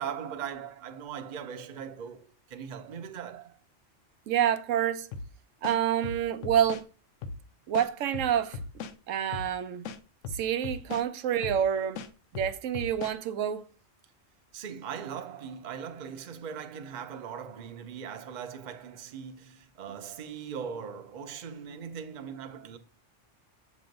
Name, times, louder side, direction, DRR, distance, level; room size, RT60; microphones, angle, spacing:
voice 1, 0.0-3.6 14.5-22.8, right 7 dB, 45° right, 0.7 m, -40 dB
voice 2, 4.3-5.1 5.6-6.9 7.7-8.6 9.1-9.9 10.3-12.0 12.3-13.7, right 9 dB, 85° right, 1.0 m, -28 dB
sound 1, 5.1-5.3 5.6-6.8 7.2-7.4 7.7-9.0 9.3-9.5 9.8-11.1 11.4-11.6 12.0-13.2, left 4 dB, 90° left, 1.0 m, -38 dB
6.7 x 3.0 x 5.1 m
omnidirectional pair, 1.3 m